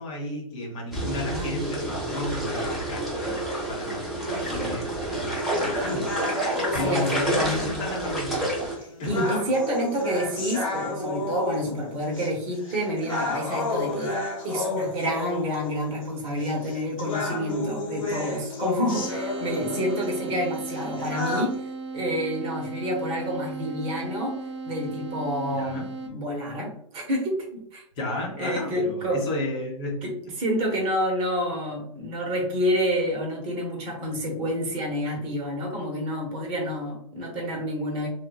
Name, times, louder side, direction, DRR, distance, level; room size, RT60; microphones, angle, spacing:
voice 1, 0.0-3.4 3.7-6.2 6.7-8.5 9.0-9.5 25.5-25.9 28.0-30.3, left 1 dB, 40° left, -1 dB, 0.8 m, -33 dB
sound 1, 0.9-8.7, right 1 dB, ahead, 0.8 m, -29 dB
voice 2, 1.0-1.7 6.8-7.8 9.0-14.1 14.4-21.6 21.9-24.3 24.6-27.8 28.4-29.3 30.0-38.1, equal, 35° right, 0 dB, 0.8 m, -28 dB
sound 2, 5.5-21.5, left 2 dB, 75° left, 0.9 m, -33 dB
sound 3, 18.9-26.1, right 3 dB, 55° right, 0.5 m, -36 dB
2.9 x 2.1 x 2.2 m, 0.71 s
figure-of-eight pair, 110°, 17 cm